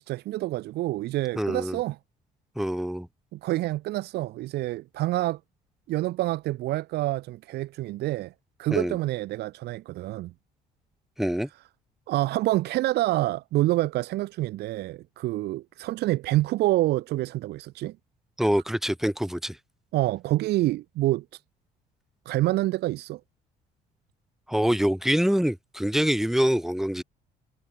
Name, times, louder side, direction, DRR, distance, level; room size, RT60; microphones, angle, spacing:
voice 1, 0.0-2.0 3.3-5.4 5.9-8.3 8.6-10.3 12.1-18.0 19.9-21.4 22.2-23.2, right 16 dB, 75° right, 1.3 m, -27 dB
voice 2, 1.4-1.8 2.6-3.1 8.7-9.0 11.2-11.5 18.4-19.6 24.5-27.0, equal, ahead, 2.7 m, -25 dB
cardioid pair, 110°, 17 cm